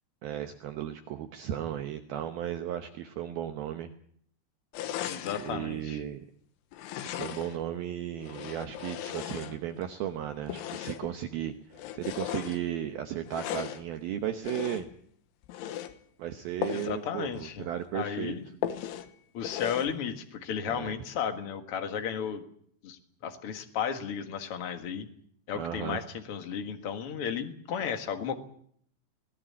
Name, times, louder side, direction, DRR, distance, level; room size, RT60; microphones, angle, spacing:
voice 1, 0.2-3.9 5.4-6.3 7.1-11.5 11.9-14.9 16.2-18.4 20.7-20.9 25.6-26.0, right 11 dB, 70° right, 7 dB, 2.4 m, -35 dB
sound 1, 4.7-5.6 6.7-7.6 8.2-9.9 10.4-11.2 11.7-12.6 13.2-13.9 14.4-15.0 15.4-15.9 16.6-17.0 17.3-17.4 17.8-17.9 18.6-19.1 19.4-19.9, left 11 dB, 90° left, 3.7 m, -37 dB
voice 2, 5.1-6.0 16.7-17.7 17.9-18.4 19.3-22.4 22.8-25.0 25.5-28.3, left 7 dB, 65° left, 7 dB, 1.4 m, -34 dB
21.5 x 18.0 x 8.6 m, 0.65 s
omnidirectional pair, 5.4 m